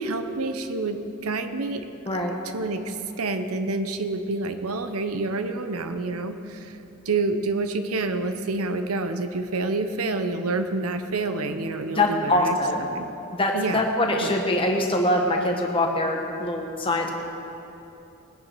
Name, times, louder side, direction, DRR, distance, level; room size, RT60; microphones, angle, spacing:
voice 1, 0.0-1.9 2.1-2.2 2.5-6.8 7.1-12.6 12.9-13.1 13.5-13.9 14.2-14.3, right 3 dB, 90° right, 8 dB, 0.8 m, -28 dB
voice 2, 11.9-12.9 13.3-17.1, left 1 dB, 25° left, 1 dB, 1.4 m, -23 dB
20.0 x 9.8 x 4.7 m, 3.0 s
head